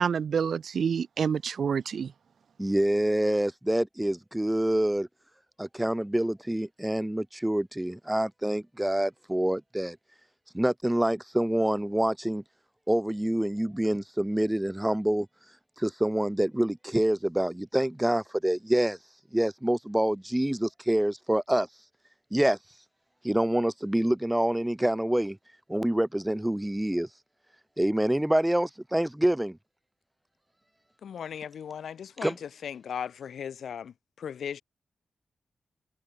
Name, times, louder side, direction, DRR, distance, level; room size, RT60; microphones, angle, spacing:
voice 1, 0.0-2.1, right 6 dB, 70° right, 2.4 m, -27 dB
voice 2, 2.6-5.1 5.6-10.0 10.5-12.4 12.9-15.3 15.8-19.0 19.3-21.7 22.3-22.6 23.2-25.4 25.7-27.1 27.8-29.6 32.2-32.3, right 1 dB, 10° right, 1.8 m, -26 dB
voice 3, 31.0-34.6, left 8 dB, 80° left, 3.6 m, -37 dB
supercardioid pair, 40°, 0 cm